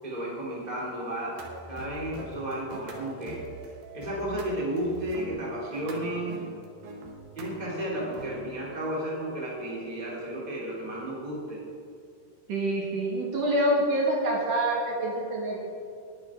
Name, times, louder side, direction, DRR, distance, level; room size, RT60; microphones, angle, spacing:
voice 1, 0.0-1.4 1.7-3.4 3.9-6.4 7.3-11.6, right 1 dB, 10° right, -6 dB, 3.3 m, -33 dB
sound 1, 1.4-8.5, right 2 dB, 85° right, 3.2 m, -43 dB
voice 2, 12.5-15.6, right 1 dB, 65° right, -4 dB, 3.7 m, -26 dB
20.5 x 9.5 x 3.9 m, 2.3 s
omnidirectional pair, 4.0 m